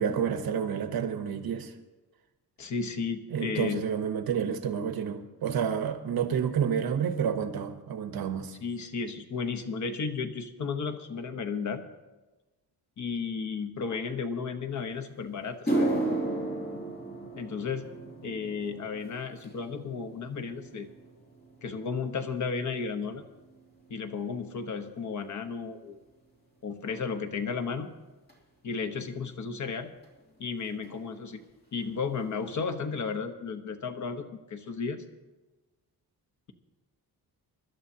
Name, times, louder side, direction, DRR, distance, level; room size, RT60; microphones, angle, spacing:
voice 1, 0.0-1.8 3.3-8.6, right 7 dB, 70° right, 7 dB, 1.1 m, -29 dB
voice 2, 2.6-3.8 8.6-11.8 13.0-15.9 17.4-17.9 18.2-20.9 21.6-23.3 23.9-26.0 26.6-27.9 28.6-29.9 30.4-31.4 31.7-35.0, left 5 dB, 50° left, 6 dB, 1.1 m, -33 dB
sound 1, 14.9-15.0 15.5-24.0 24.3-24.7 25.4-25.5 28.3-28.4 30.0-30.1 30.3-30.6 30.8-31.4 31.8-31.9 32.4-32.5, right 2 dB, 25° left, 2.8 m, -35 dB
24.0 x 12.0 x 2.8 m, 1.1 s
wide cardioid pair, 155°, 37 cm